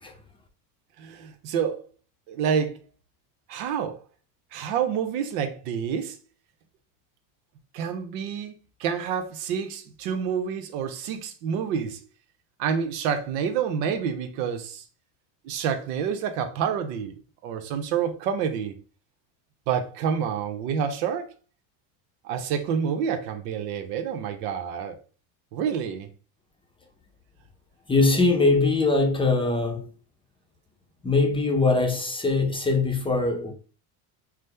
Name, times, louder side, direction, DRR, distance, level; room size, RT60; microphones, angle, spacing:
voice 1, 1.0-1.8 2.3-2.8 3.5-4.0 4.5-6.2 7.7-12.0 12.6-14.8 15.4-17.2 17.4-18.7 19.7-21.3 22.2-25.0 25.5-26.1, right 7 dB, 85° right, 0.9 m, -28 dB
voice 2, 27.9-29.9 31.0-33.5, left 3 dB, 10° left, 0.6 m, -22 dB
6.1 x 2.1 x 3.3 m
cardioid pair, 125°, 45 cm